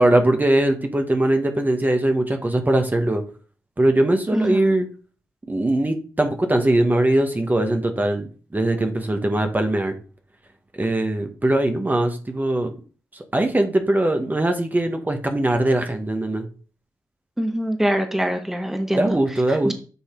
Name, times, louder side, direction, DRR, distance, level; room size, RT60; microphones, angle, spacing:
voice 1, 0.0-3.2 3.8-4.9 5.5-9.9 10.8-12.7 13.3-16.5 19.0-19.7, right 1 dB, 25° right, 5 dB, 1.2 m, -21 dB
voice 2, 17.4-19.1 19.6-19.7, equal, 5° right, 6 dB, 1.2 m, -23 dB
8.2 x 3.2 x 4.4 m, 0.38 s
supercardioid pair, 45°, 7 cm